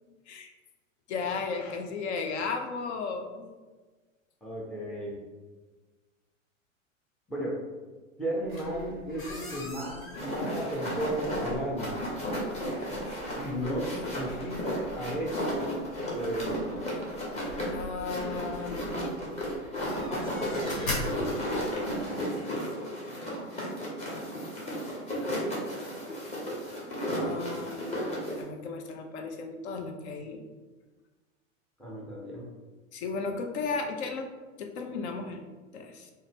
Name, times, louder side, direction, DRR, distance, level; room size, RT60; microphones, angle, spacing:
voice 1, 1.1-3.5 14.3-14.5 17.7-19.3 24.1-24.2 27.2-30.4 32.9-34.3 34.6-35.4 35.7-36.1, left 4 dB, 55° left, 4 dB, 0.6 m, -35 dB
voice 2, 4.4-5.1 7.3-7.6 8.2-12.0 13.4-15.6 16.1-16.5 20.6-21.2 27.1-27.3 31.8-32.5, right 1 dB, ahead, -5 dB, 0.4 m, -34 dB
sound 1, 8.4-22.0, left 1 dB, 80° left, 1.2 m, -42 dB
sound 2, 10.1-28.4, equal, 15° left, 0.8 m, -34 dB
3.8 x 2.1 x 3.3 m, 1.3 s
hypercardioid pair, 100°, 39 cm